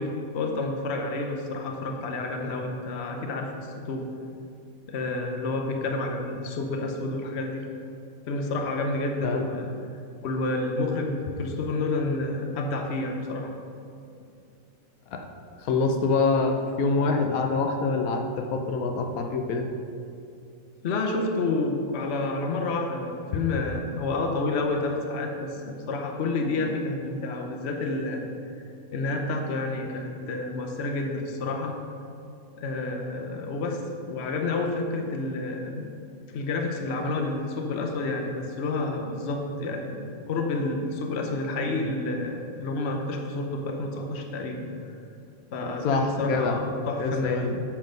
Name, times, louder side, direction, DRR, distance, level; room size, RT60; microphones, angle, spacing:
voice 1, 0.0-4.1 4.9-7.7 8.3-9.7 10.2-13.6 20.8-28.2 28.9-31.8 32.6-33.8 34.1-35.9 36.3-45.0 45.5-47.5, left 2 dB, 55° left, 3 dB, 1.0 m, -29 dB
voice 2, 15.6-19.7 45.8-46.6 47.0-47.6, left 4 dB, 85° left, 4 dB, 1.1 m, -25 dB
7.4 x 5.7 x 5.1 m, 2.5 s
omnidirectional pair, 1.5 m